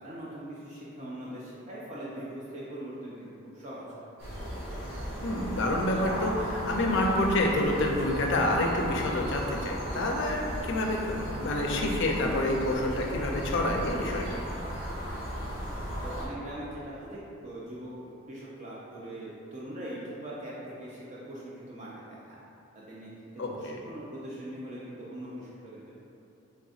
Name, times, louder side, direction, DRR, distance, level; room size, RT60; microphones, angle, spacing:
voice 1, 0.0-3.9 15.1-15.7 16.0-17.9 18.3-22.4 22.7-25.9, right 1 dB, 35° right, -7 dB, 0.4 m, -41 dB
sound 1, 4.2-16.3, equal, 75° right, 1.1 m, -36 dB
voice 2, 5.2-14.4 23.4-23.8, left 1 dB, 55° left, 0 dB, 0.4 m, -28 dB
3.9 x 3.3 x 2.4 m, 2.8 s
head